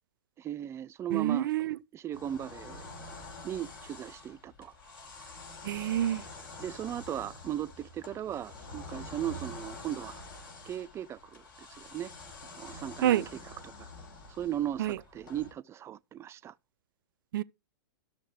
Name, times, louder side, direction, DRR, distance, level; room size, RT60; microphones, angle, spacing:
voice 1, 0.4-1.5 1.9-2.9 3.4-4.7 5.1-5.3 6.6-10.2 10.6-12.1 12.6-13.3 13.6-13.9 14.3-16.5, right 11 dB, 25° right, 0.4 m, -37 dB
voice 2, 1.1-1.8 5.6-6.2 13.0-13.2 14.8-15.0 17.3-17.4, right 12 dB, 70° right, 0.6 m, -28 dB
sound 1, 2.1-15.5, left 2 dB, 70° left, 5.3 m, -47 dB
13.5 x 6.4 x 3.3 m
hypercardioid pair, 115°, 12 cm